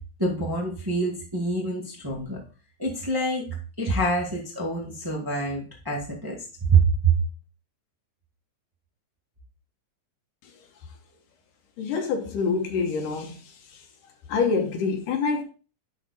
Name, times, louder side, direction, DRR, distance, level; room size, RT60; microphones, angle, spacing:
voice 1, 0.2-2.4 2.8-3.4 3.8-6.4 6.7-7.2, right 3 dB, 10° right, 1.4 m, -25 dB
voice 2, 11.8-13.4 14.3-15.4, left 5 dB, 80° left, 2.8 m, -26 dB
11.0 x 4.6 x 4.2 m
omnidirectional pair, 3.7 m